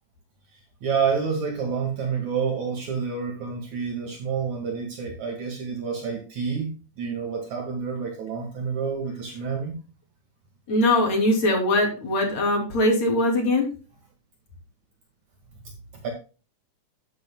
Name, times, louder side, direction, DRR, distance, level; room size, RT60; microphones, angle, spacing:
voice 1, 0.8-6.7 7.0-9.7 16.0-16.1, right 6 dB, 60° right, 1 dB, 3.2 m, -28 dB
voice 2, 10.7-13.7, left 1 dB, 55° left, 0 dB, 4.1 m, -21 dB
11.5 x 10.0 x 2.3 m, 0.34 s
omnidirectional pair, 3.7 m